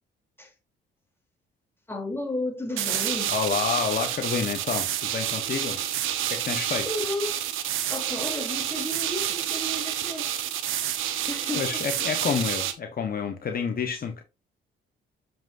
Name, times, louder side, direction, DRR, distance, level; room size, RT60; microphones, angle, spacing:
voice 1, 1.9-3.3 6.8-7.5 7.9-10.3 11.3-11.8, left 2 dB, 10° left, 3.2 m, -33 dB
sound 1, 2.8-12.7, right 11 dB, 90° right, 1.1 m, -29 dB
voice 2, 3.3-5.8 6.3-6.9 11.5-14.2, left 6 dB, 50° left, 1.2 m, -29 dB
7.4 x 5.9 x 2.6 m
cardioid pair, 90°, 20 cm